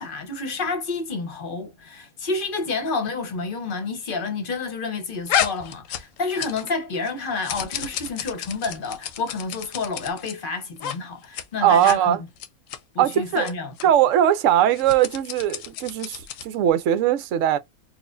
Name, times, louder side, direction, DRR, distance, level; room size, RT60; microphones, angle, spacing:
voice 1, 0.0-12.1 12.9-13.7, left 4 dB, 45° left, 0.9 m, -29 dB
sound 1, 5.3-6.8 7.0-10.3 10.8-11.0 11.2-11.4 11.7-12.0 12.4-12.8 13.4-13.5 13.8-13.9 14.7-16.6, left 10 dB, 70° left, 0.9 m, -31 dB
voice 2, 11.6-12.2 13.0-13.5 13.8-17.6, right 11 dB, 65° right, 0.9 m, -20 dB
4.1 x 2.5 x 2.5 m
omnidirectional pair, 1.5 m